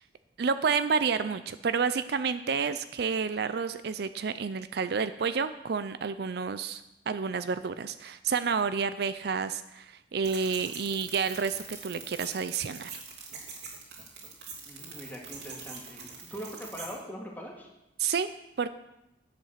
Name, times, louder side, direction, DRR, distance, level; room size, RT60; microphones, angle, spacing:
voice 1, 0.4-13.0 18.0-18.3 18.6-18.7, right 5 dB, 60° right, 12 dB, 0.5 m, -30 dB
sound 1, 10.2-17.0, right 5 dB, 80° right, 2.8 m, -44 dB
voice 2, 14.7-17.7, equal, 10° left, -1 dB, 2.1 m, -42 dB
10.0 x 8.2 x 6.5 m, 0.89 s
head